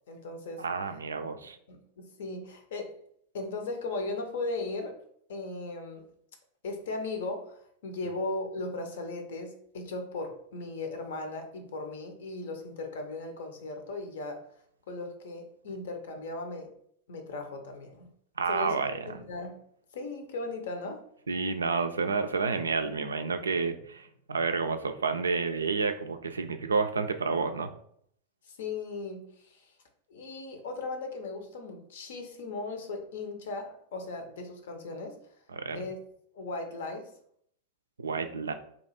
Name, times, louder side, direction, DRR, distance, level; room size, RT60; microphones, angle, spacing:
voice 1, 0.1-0.6 1.7-3.0 3.3-5.0 5.3-6.1 6.6-14.4 14.9-16.7 17.1-18.1 18.5-18.8 19.1-19.6 19.9-21.0 28.4-29.7 30.1-35.2 35.7-36.0 36.3-37.1, left 3 dB, 60° left, 5 dB, 0.6 m, -37 dB
voice 2, 0.6-1.6 18.4-19.2 21.3-27.7 35.5-35.8 38.0-38.5, right 4 dB, 70° right, 8 dB, 0.3 m, -30 dB
2.8 x 2.4 x 4.1 m, 0.67 s
figure-of-eight pair, 90°, 0 cm